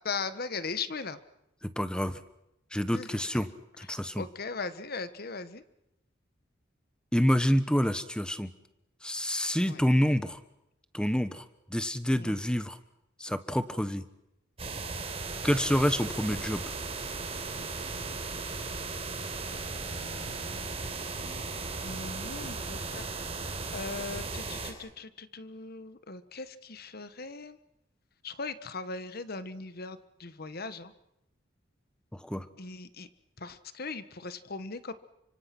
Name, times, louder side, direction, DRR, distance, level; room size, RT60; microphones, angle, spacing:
voice 1, 0.0-1.2 2.9-3.1 4.2-5.6 9.7-9.8 12.2-12.4 19.9-20.7 21.2-21.4 21.8-23.0 23.7-27.6 28.2-30.9 32.6-33.1 33.4-34.9, left 4 dB, 50° left, 12 dB, 1.4 m, -39 dB
voice 2, 1.6-2.2 2.7-3.5 3.8-4.3 7.1-8.5 9.0-10.4 10.9-12.8 13.2-14.0 15.4-16.6 32.1-32.5, equal, 5° left, 12 dB, 1.2 m, -28 dB
sound 1, 14.6-24.7, right 3 dB, 30° right, 4.5 m, -36 dB
30.0 x 25.5 x 6.1 m, 0.86 s
head